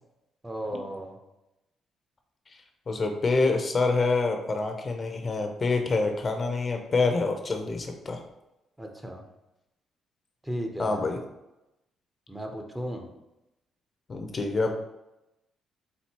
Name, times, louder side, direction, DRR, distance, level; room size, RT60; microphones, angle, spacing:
voice 1, 0.4-1.2 8.8-9.3 10.4-11.0 12.3-13.1, equal, 10° right, 3 dB, 0.7 m, -35 dB
voice 2, 2.9-8.2 10.8-11.2 14.1-14.7, left 3 dB, 35° left, 5 dB, 0.6 m, -26 dB
4.3 x 3.9 x 2.9 m, 0.94 s
cardioid pair, 90°, 0 cm